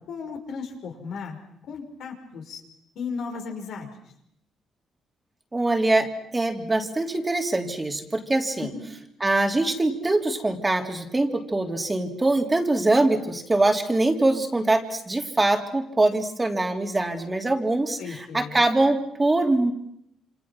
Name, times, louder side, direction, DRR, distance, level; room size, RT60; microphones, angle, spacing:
voice 1, 0.0-1.4 1.7-2.6 3.0-3.9 8.6-8.9 18.0-18.6, left 5 dB, 75° left, 3 dB, 5.6 m, -35 dB
voice 2, 5.5-6.1 6.3-8.7 9.2-19.7, right 2 dB, 20° right, 4 dB, 3.3 m, -23 dB
28.0 x 26.0 x 6.1 m, 0.74 s
cardioid pair, 90°, 0 cm